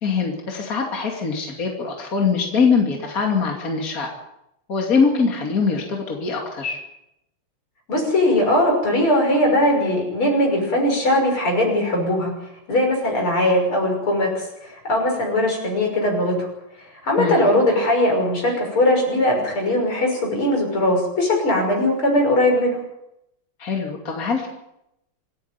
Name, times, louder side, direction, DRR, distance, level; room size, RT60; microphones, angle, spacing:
voice 1, 0.0-4.1 4.7-6.8 17.2-17.4 23.6-24.5, left 5 dB, 40° left, 1 dB, 3.0 m, -22 dB
voice 2, 7.9-12.3 12.7-16.5 17.0-22.8, left 1 dB, 80° left, 1 dB, 7.0 m, -20 dB
26.5 x 10.5 x 9.6 m, 0.83 s
omnidirectional pair, 2.3 m